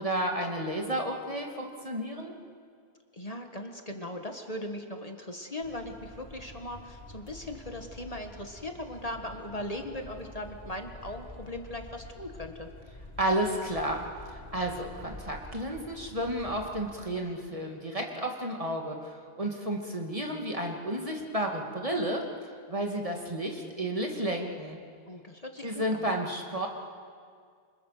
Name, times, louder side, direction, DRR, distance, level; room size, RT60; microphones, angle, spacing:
voice 1, 0.0-2.3 13.2-22.2 22.7-24.8 25.6-26.7, right 1 dB, 35° right, 1 dB, 2.5 m, -32 dB
voice 2, 3.1-12.7 25.1-26.1, left 1 dB, 35° left, 4 dB, 1.8 m, -39 dB
sound 1, 5.6-17.0, left 2 dB, 85° left, 3.6 m, -48 dB
29.0 x 26.0 x 6.8 m, 2.1 s
omnidirectional pair, 1.1 m